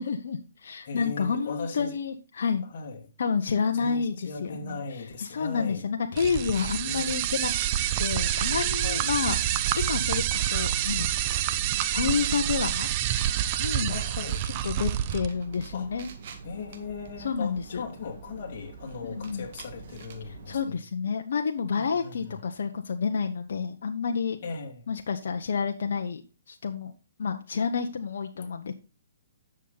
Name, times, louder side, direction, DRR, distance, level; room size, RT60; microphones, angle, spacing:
voice 1, 0.0-2.6 3.2-4.1 4.4-4.8 5.2-7.5 8.0-9.4 9.8-11.2 11.9-12.9 13.6-14.0 14.6-16.1 17.2-17.8 19.0-19.4 20.5-24.4 24.9-26.2 26.5-26.9 27.2-28.7, left 6 dB, 65° left, 1.1 m, -29 dB
voice 2, 0.8-2.0 2.7-3.1 3.7-5.8 6.9-7.1 8.8-9.1 13.9-14.4 15.7-16.0 16.4-20.8 21.8-22.4 24.4-24.9 28.3-28.5, left 4 dB, 50° left, 2.5 m, -38 dB
sound 1, 6.2-15.3, right 12 dB, 30° right, 0.7 m, -27 dB
sound 2, 6.2-20.6, right 5 dB, 50° right, 2.0 m, -42 dB
9.9 x 6.9 x 4.0 m
hypercardioid pair, 150°, 0 cm